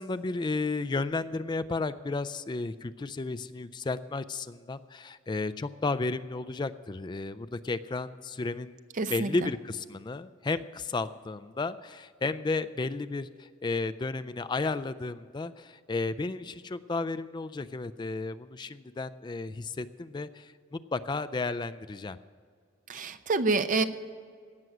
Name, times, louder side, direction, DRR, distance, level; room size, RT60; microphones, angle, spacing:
voice 1, 0.0-8.7 9.1-22.2, left 3 dB, 20° left, 13 dB, 0.3 m, -33 dB
voice 2, 9.0-9.3 22.9-23.8, right 3 dB, 40° right, 10 dB, 0.6 m, -27 dB
17.0 x 6.1 x 7.8 m, 2.1 s
head